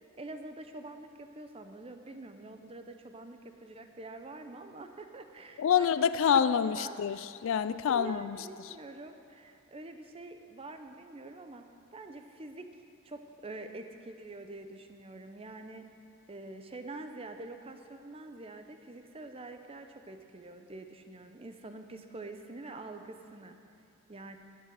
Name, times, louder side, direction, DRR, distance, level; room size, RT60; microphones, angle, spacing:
voice 1, 0.2-5.9 6.4-7.3 7.9-12.7 13.0-15.9 16.3-23.6 24.1-24.4, right 2 dB, 25° right, 0.6 m, -46 dB
voice 2, 5.6-8.4, left 7 dB, 60° left, 0.3 m, -27 dB
11.5 x 8.4 x 7.5 m
head